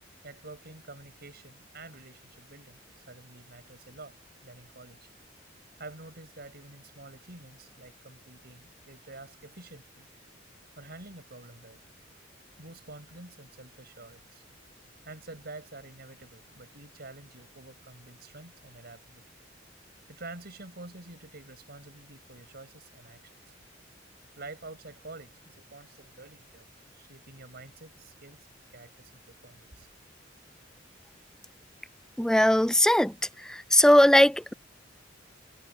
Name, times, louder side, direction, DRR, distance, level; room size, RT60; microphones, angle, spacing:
voice 1, 0.2-4.2 4.4-5.1 5.8-10.1 10.8-11.8 12.6-14.4 15.1-19.2 20.1-23.3 24.4-26.7 26.9-29.9, right 2 dB, 55° right, 5.8 m, -48 dB
voice 2, 32.2-33.1 33.4-34.5, left 1 dB, 5° left, 0.4 m, -20 dB
head